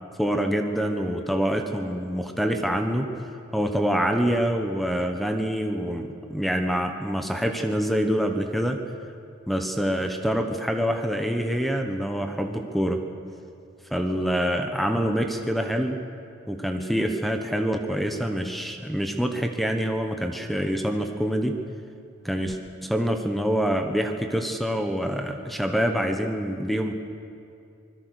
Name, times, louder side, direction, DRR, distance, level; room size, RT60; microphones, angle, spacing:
voice 1, 0.2-8.8 9.5-13.0 13.9-16.0 16.5-21.6 22.2-26.9, equal, ahead, 5 dB, 1.3 m, -26 dB
25.0 x 21.0 x 6.6 m, 2.5 s
head